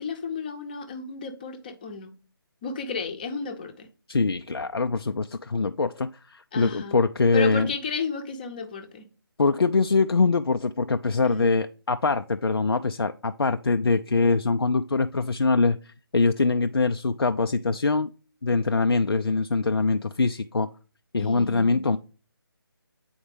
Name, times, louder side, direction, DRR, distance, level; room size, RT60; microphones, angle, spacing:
voice 1, 0.0-2.1 2.6-3.9 6.5-7.0 7.3-9.1 11.2-11.4 21.2-21.9, left 5 dB, 25° left, 0.7 m, -33 dB
voice 2, 4.1-7.7 9.4-18.1 18.4-20.7 21.1-22.0, left 3 dB, 85° left, 0.4 m, -23 dB
8.7 x 4.3 x 3.2 m
figure-of-eight pair, 155°, 13 cm